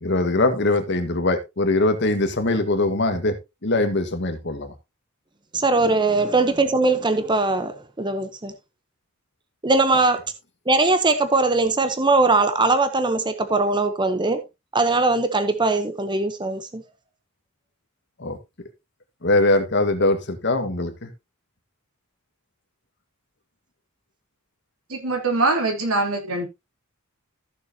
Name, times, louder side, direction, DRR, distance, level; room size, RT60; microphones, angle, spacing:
voice 1, 0.0-4.7 18.2-18.4 19.2-21.1, left 2 dB, 55° left, 1.7 m, -22 dB
voice 2, 5.5-8.5 9.6-10.2 10.7-14.4 14.7-16.8, right 3 dB, 20° right, 0.9 m, -20 dB
voice 3, 24.9-26.4, right 2 dB, 85° right, 3.3 m, -23 dB
14.5 x 7.0 x 2.8 m
head